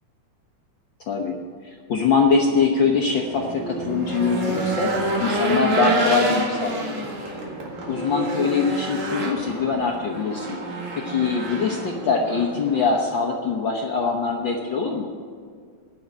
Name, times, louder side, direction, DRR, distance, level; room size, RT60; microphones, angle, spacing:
voice 1, 1.1-4.9 5.2-7.0 7.9-10.6 10.9-15.1, left 5 dB, 70° left, 0 dB, 1.1 m, -23 dB
Race car auto racing / Engine, 2.9-13.0, right 2 dB, 70° right, 3.2 m, -28 dB
11.0 x 7.2 x 9.2 m, 2.1 s
omnidirectional pair, 3.4 m